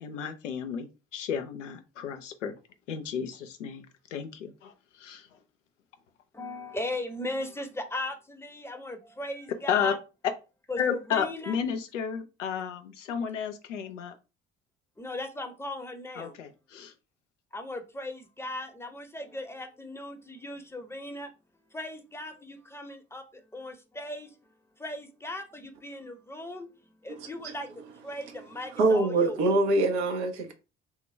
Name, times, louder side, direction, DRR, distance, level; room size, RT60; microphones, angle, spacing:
voice 1, 0.0-0.9 1.1-2.5 2.9-3.9 4.1-5.3 9.7-9.9 10.8-14.1 16.2-16.9, left 7 dB, 85° left, 0.5 m, -32 dB
voice 2, 6.3-10.0 10.7-11.6 13.1-13.3 15.0-16.4 17.5-21.3 21.7-29.5, left 1 dB, 5° left, 0.7 m, -38 dB
voice 3, 28.8-30.5, right 2 dB, 75° right, 0.8 m, -24 dB
3.5 x 2.2 x 3.2 m
figure-of-eight pair, 55°, 36 cm